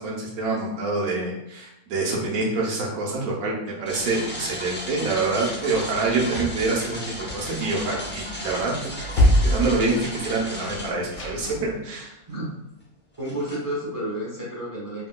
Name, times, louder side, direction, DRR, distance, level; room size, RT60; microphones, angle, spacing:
voice 1, 0.0-8.7 9.1-12.2, right 3 dB, 75° right, -2 dB, 1.3 m, -26 dB
sound 1, 3.9-11.3 11.9-12.0 13.1-13.6, left 1 dB, 20° left, 0.3 m, -35 dB
sound 2, 5.8-11.8, left 1 dB, 50° left, 0.7 m, -26 dB
voice 2, 13.2-15.1, right 1 dB, 20° right, -6 dB, 0.6 m, -31 dB
3.1 x 2.8 x 2.2 m, 0.89 s
omnidirectional pair, 1.6 m